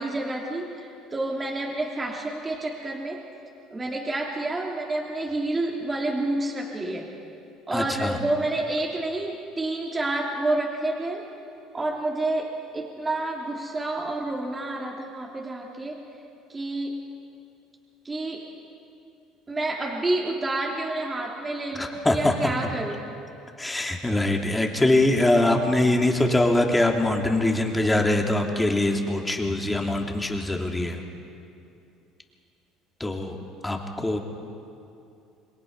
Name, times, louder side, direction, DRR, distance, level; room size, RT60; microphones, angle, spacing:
voice 1, 0.0-3.2 3.7-7.1 7.7-11.2 11.7-16.0 16.5-17.0 18.0-18.4 19.5-23.0, right 2 dB, 25° right, -1 dB, 3.1 m, -29 dB
voice 2, 7.7-8.2 21.7-22.7 23.6-31.0 33.0-33.4 33.6-34.2, left 1 dB, 15° left, 2 dB, 3.0 m, -23 dB
27.5 x 21.5 x 5.5 m, 2.6 s
hypercardioid pair, 70°, 0 cm